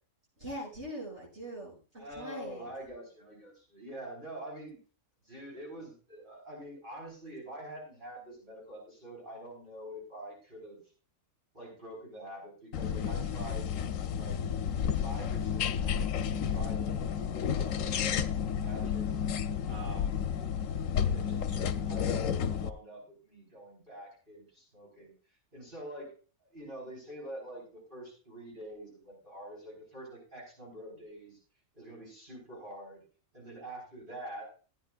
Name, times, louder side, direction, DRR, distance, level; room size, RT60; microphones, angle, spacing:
voice 1, 0.4-2.7, right 1 dB, 60° right, -5 dB, 7.7 m, -42 dB
voice 2, 2.0-4.8 5.2-10.8 11.5-13.7 14.1-14.4 15.0-19.2 19.7-20.2 21.0-25.1 25.5-26.1 26.4-31.4 31.7-33.0 33.3-34.5, right 1 dB, 40° right, -4 dB, 5.0 m, -46 dB
sound 1, 12.7-22.7, left 7 dB, 80° left, 1.0 m, -31 dB
16.5 x 9.7 x 2.5 m, 0.37 s
omnidirectional pair, 1.4 m